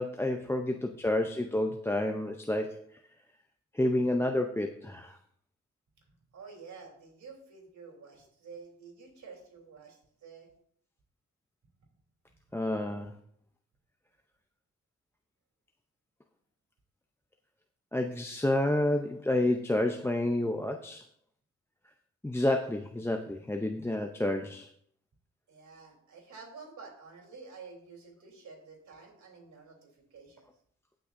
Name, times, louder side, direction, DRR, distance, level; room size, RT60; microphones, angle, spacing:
voice 1, 0.0-2.8 3.7-5.2 12.5-13.1 17.9-21.0 22.2-24.7, left 1 dB, 10° left, 4 dB, 0.6 m, -29 dB
voice 2, 6.3-10.5 25.5-30.5, right 4 dB, 75° right, 0 dB, 3.5 m, -50 dB
18.0 x 6.2 x 2.6 m, 0.64 s
cardioid pair, 70°, 30 cm